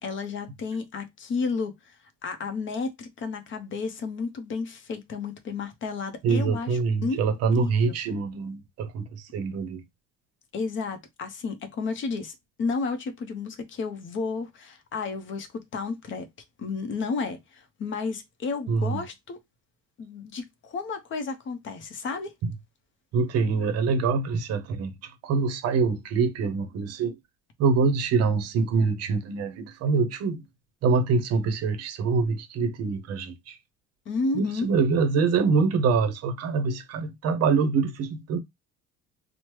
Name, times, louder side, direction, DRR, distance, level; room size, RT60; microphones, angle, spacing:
voice 1, 0.0-2.0 2.2-6.7 7.0-7.2 7.6-7.9 10.5-16.3 16.6-19.4 20.0-22.3 34.1-34.7, left 4 dB, 40° left, 0.6 m, -32 dB
voice 2, 6.2-9.8 18.7-19.0 23.1-27.2 27.6-30.4 30.8-33.6 34.3-38.4, right 4 dB, 55° right, 0.6 m, -25 dB
3.0 x 2.0 x 3.0 m
cardioid pair, 135°, 31 cm